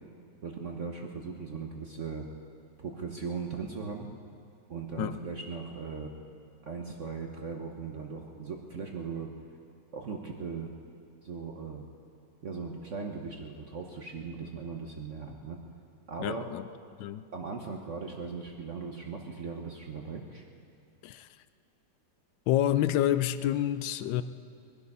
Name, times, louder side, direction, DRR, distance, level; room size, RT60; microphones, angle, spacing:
voice 1, 0.4-2.3 2.8-4.1 4.7-6.1 6.6-9.3 9.9-10.7 11.2-11.8 12.4-15.6 16.1-16.4 17.3-20.4, right 5 dB, 50° right, 1 dB, 1.2 m, -38 dB
voice 2, 16.2-16.6 17.0-17.2 21.0-21.3 22.5-24.2, left 12 dB, 85° left, 13 dB, 1.3 m, -28 dB
22.0 x 11.5 x 5.5 m, 2.4 s
omnidirectional pair, 2.0 m